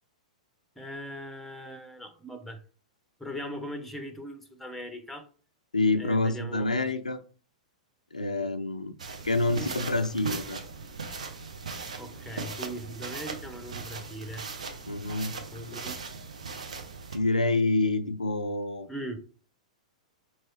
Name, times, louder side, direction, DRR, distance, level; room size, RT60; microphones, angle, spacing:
voice 1, 0.8-2.6 3.2-5.3 6.0-6.7 9.6-9.7 12.0-14.4 15.5-16.0 18.9-19.2, equal, 5° left, 0.7 m, -39 dB
voice 2, 5.7-7.2 8.1-8.9 9.2-10.7 14.9-15.3 17.1-18.9, left 2 dB, 85° left, 0.4 m, -27 dB
sound 1, 9.0-17.2, right 4 dB, 70° right, 0.7 m, -39 dB
4.5 x 3.1 x 3.0 m
figure-of-eight pair, 100°, 4 cm